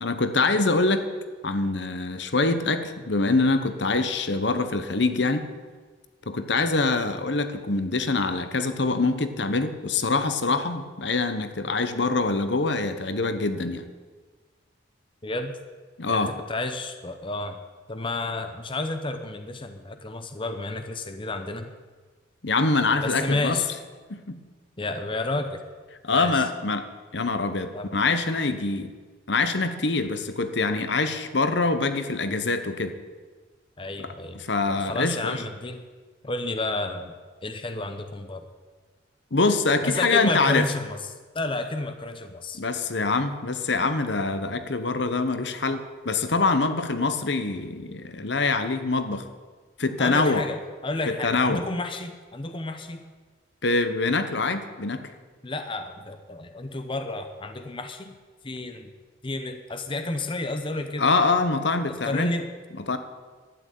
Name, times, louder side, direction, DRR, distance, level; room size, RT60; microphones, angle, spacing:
voice 1, 0.0-1.0 1.4-5.5 6.3-13.9 16.0-16.3 22.4-23.6 24.1-24.4 26.0-29.0 29.3-33.0 34.0-34.1 34.3-35.4 39.3-40.7 42.5-49.3 49.8-50.4 51.1-51.7 53.6-55.1 61.0-62.3 62.9-63.0, left 3 dB, 65° left, 10 dB, 1.1 m, -24 dB
voice 2, 15.2-15.5 16.1-17.6 17.9-21.7 23.0-23.7 24.8-25.6 26.1-26.4 27.7-27.9 33.8-34.4 34.7-35.8 36.2-37.1 37.4-38.5 39.8-41.0 41.3-42.6 50.0-53.0 55.4-58.1 58.4-58.9 59.2-61.1 61.9-62.5, left 2 dB, 25° left, 7 dB, 0.9 m, -31 dB
12.0 x 9.0 x 9.2 m, 1.4 s
head